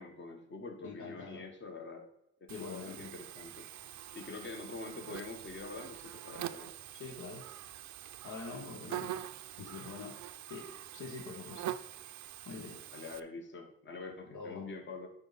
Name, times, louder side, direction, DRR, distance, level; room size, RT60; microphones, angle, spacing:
voice 1, 0.0-2.0 2.4-3.7 4.1-6.7 8.6-9.0 12.9-15.1, left 3 dB, 40° left, 1.4 m, -45 dB
voice 2, 0.8-1.5 2.5-3.2 6.9-7.5 8.2-9.3 9.6-10.2 10.5-11.8 12.4-12.8 14.3-14.7, left 4 dB, 75° left, 1.4 m, -45 dB
Buzz, 2.5-13.2, right 12 dB, 70° right, 0.5 m, -45 dB
8.8 x 5.6 x 4.1 m
cardioid pair, 90°, 30 cm